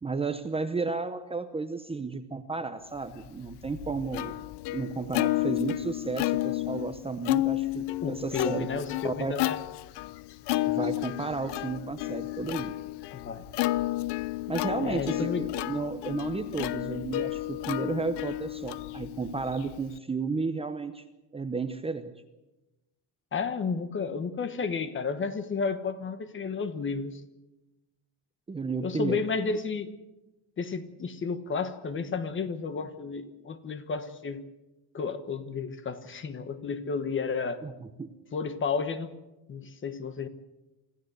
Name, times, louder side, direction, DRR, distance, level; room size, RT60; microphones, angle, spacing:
voice 1, 0.0-4.3 4.7-8.7 9.0-9.4 10.7-12.8 14.5-21.0 21.3-22.1 28.5-29.2 37.6-38.1, right 4 dB, 15° right, 8 dB, 0.8 m, -33 dB
Plucked string instrument, 3.2-20.0, left 18 dB, 70° left, 0.7 m, -32 dB
voice 2, 8.0-9.6 13.1-13.5 14.8-15.4 23.3-27.2 28.8-29.9 30.6-34.5 34.9-37.6 38.3-39.1 39.5-40.3, left 5 dB, 30° left, 12 dB, 1.2 m, -32 dB
25.5 x 14.5 x 8.0 m, 1.0 s
cardioid pair, 170°, 42 cm